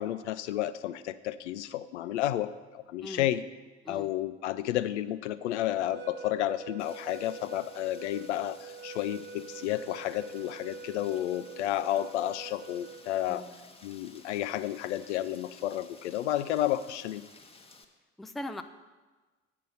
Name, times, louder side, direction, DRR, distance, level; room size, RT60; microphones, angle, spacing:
voice 1, 0.0-3.4 3.9-13.4 13.8-17.2, left 13 dB, 75° left, 14 dB, 0.5 m, -31 dB
sound 1, 5.6-13.4, right 5 dB, 30° right, 0.7 m, -46 dB
Rain, 6.8-17.8, left 3 dB, 15° left, 0.9 m, -55 dB
voice 2, 18.2-18.6, left 1 dB, ahead, 8 dB, 0.4 m, -39 dB
7.7 x 7.5 x 5.4 m, 1.3 s
figure-of-eight pair, 60°, 35 cm